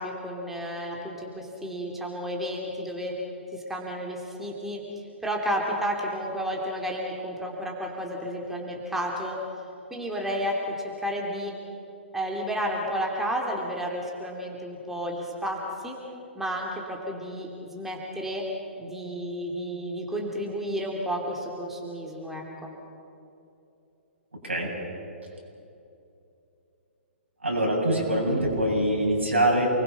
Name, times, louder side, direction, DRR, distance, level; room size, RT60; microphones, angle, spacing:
voice 1, 0.0-3.1 3.5-4.8 5.2-9.4 9.9-10.5 11.0-11.5 12.1-16.0 16.3-18.4 18.8-22.7, equal, 5° right, -1 dB, 3.0 m, -32 dB
voice 2, 27.4-29.7, right 1 dB, 80° right, -2 dB, 7.9 m, -24 dB
28.5 x 21.5 x 6.0 m, 2.8 s
figure-of-eight pair, 120°, 7 cm